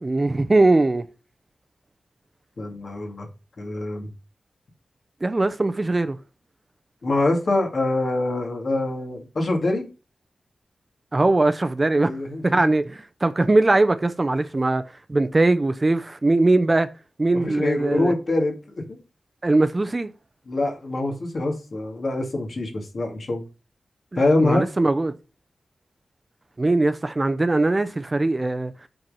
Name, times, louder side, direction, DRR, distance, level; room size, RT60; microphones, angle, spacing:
voice 1, 0.0-1.1 5.2-6.2 11.1-12.1 12.4-14.8 15.1-16.9 17.2-18.1 19.4-20.1 24.4-25.1 26.6-28.7, right 2 dB, 25° right, 0.6 m, -20 dB
voice 2, 2.6-3.3 3.6-4.1 7.0-9.9 12.0-12.8 17.3-19.0 20.5-23.4 24.2-24.7, left 2 dB, 55° left, 2.4 m, -25 dB
7.9 x 4.5 x 5.4 m
wide cardioid pair, 120°, 0 cm